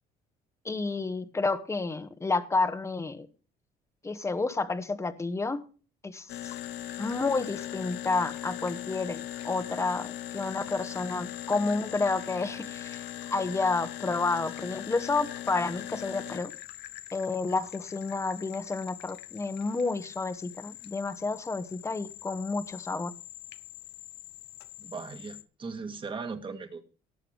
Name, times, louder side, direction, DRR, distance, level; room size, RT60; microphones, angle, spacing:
voice 1, 0.6-3.3 4.0-5.6 6.0-6.6 7.0-16.5 17.1-23.1, left 3 dB, 15° left, 10 dB, 1.1 m, -30 dB
sound 1, 6.3-25.4, left 12 dB, 85° left, 1.0 m, -41 dB
voice 2, 24.8-26.8, right 4 dB, 30° right, 7 dB, 2.0 m, -38 dB
18.0 x 7.6 x 3.5 m, 0.37 s
cardioid pair, 110°, 17 cm